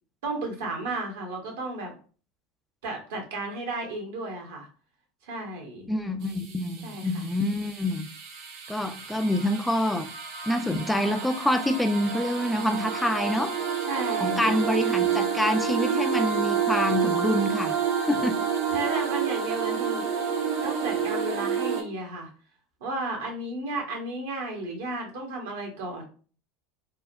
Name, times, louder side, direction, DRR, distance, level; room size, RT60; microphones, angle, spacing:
voice 1, 0.2-1.9 2.8-4.7 5.2-5.9 6.8-7.3 13.9-14.6 18.7-20.0 20.6-22.3 22.8-26.0, right 2 dB, 75° right, 1.0 m, -33 dB
voice 2, 5.9-8.1 8.7-10.1 10.5-13.5 14.2-17.8 18.1-18.5, left 1 dB, 5° left, 0.3 m, -26 dB
sound 1, 6.2-21.8, right 7 dB, 60° right, 0.7 m, -29 dB
3.4 x 2.3 x 2.2 m
hypercardioid pair, 85°, 0 cm